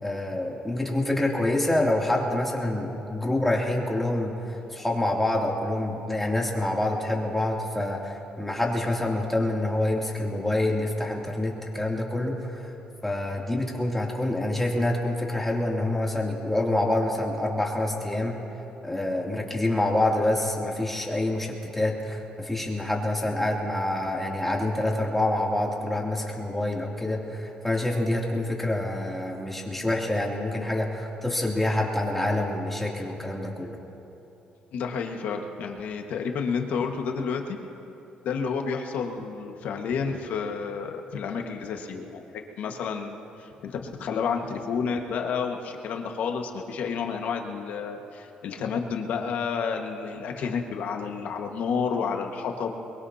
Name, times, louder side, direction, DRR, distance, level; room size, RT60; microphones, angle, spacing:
voice 1, 0.0-4.3 4.7-12.6 13.0-18.4 18.8-33.7, left 1 dB, 5° left, -2 dB, 2.7 m, -27 dB
voice 2, 34.7-37.6 38.2-52.7, left 6 dB, 70° left, 3 dB, 1.6 m, -30 dB
22.5 x 22.0 x 2.8 m, 3.0 s
cardioid pair, 100°, 3 cm